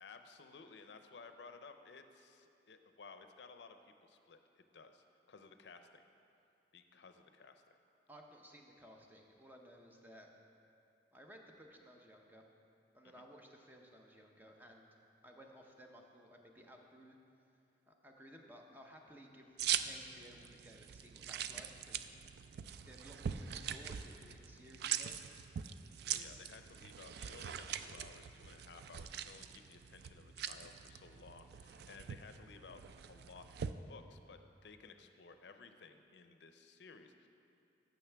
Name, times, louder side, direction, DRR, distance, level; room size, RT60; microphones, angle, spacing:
voice 1, 0.0-3.8 4.0-6.0 6.7-7.8 13.0-13.2 26.1-32.8 33.1-37.3, left 4 dB, 70° left, 8 dB, 0.5 m, -57 dB
voice 2, 8.1-10.3 11.1-12.4 12.9-14.9 15.2-17.2 17.9-22.1 22.4-22.6 22.9-25.2, equal, 10° right, 1 dB, 0.7 m, -58 dB
sound 1, 19.6-33.7, right 9 dB, 65° right, 0.3 m, -43 dB
14.5 x 6.4 x 3.4 m, 2.7 s
head